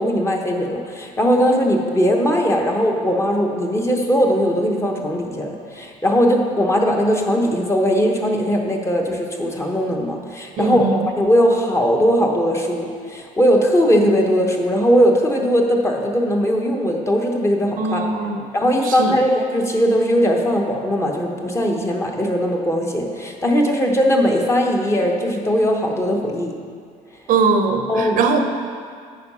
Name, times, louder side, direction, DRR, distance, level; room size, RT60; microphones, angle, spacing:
voice 1, 0.0-10.8 11.2-18.0 18.5-26.6 27.9-28.2, equal, 20° left, 1 dB, 1.0 m, -19 dB
voice 2, 10.6-11.1 17.8-18.4 18.8-19.2 27.3-28.4, right 4 dB, 65° right, 5 dB, 0.8 m, -20 dB
9.5 x 4.7 x 5.6 m, 2.2 s
cardioid pair, 110°, 15 cm